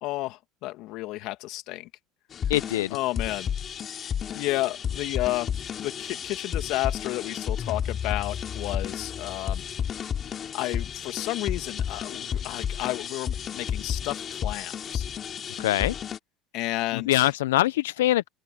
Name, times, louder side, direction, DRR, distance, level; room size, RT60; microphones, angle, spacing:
voice 1, 0.0-1.9 2.9-3.5 4.3-5.5 5.8-9.6 10.5-15.1 16.5-17.3, left 18 dB, 65° left, 2.3 m, -31 dB
sound 1, 2.3-16.2, left 8 dB, 40° left, 3.1 m, -32 dB
voice 2, 2.5-2.9 15.6-15.9 16.9-18.3, left 15 dB, 90° left, 0.4 m, -23 dB
open air
supercardioid pair, 90°, 0 cm